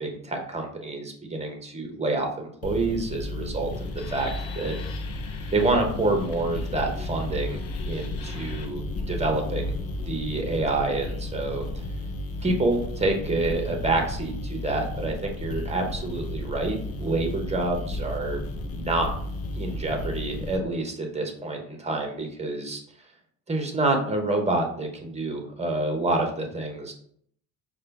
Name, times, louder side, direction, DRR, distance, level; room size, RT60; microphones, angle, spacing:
voice 1, 0.0-4.7 5.5-7.6 7.9-9.7 10.1-11.6 12.4-19.1 19.6-22.8 23.5-26.9, right 2 dB, 15° right, 3 dB, 0.9 m, -28 dB
sound 1, 2.6-20.6, left 1 dB, 35° left, 0.7 m, -33 dB
sound 2, 3.7-10.1, left 4 dB, 80° left, 0.8 m, -39 dB
4.8 x 2.3 x 3.4 m, 0.62 s
supercardioid pair, 85°, 45 cm